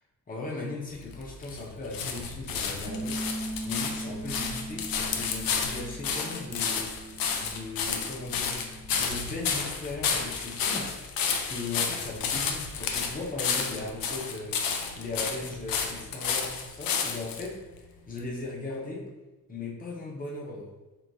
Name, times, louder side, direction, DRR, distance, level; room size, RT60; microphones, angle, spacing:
voice 1, 0.3-3.2 3.6-8.7 9.0-10.9 11.4-17.6 18.1-19.1 19.5-20.7, left 3 dB, 25° left, -3 dB, 0.7 m, -38 dB
sound 1, 0.9-17.5 18.2-18.3, left 6 dB, 75° left, 0.6 m, -31 dB
Bass guitar, 2.9-9.1, right 1 dB, 25° right, 1.0 m, -40 dB
4.6 x 2.8 x 2.7 m, 1.1 s
wide cardioid pair, 160°, 36 cm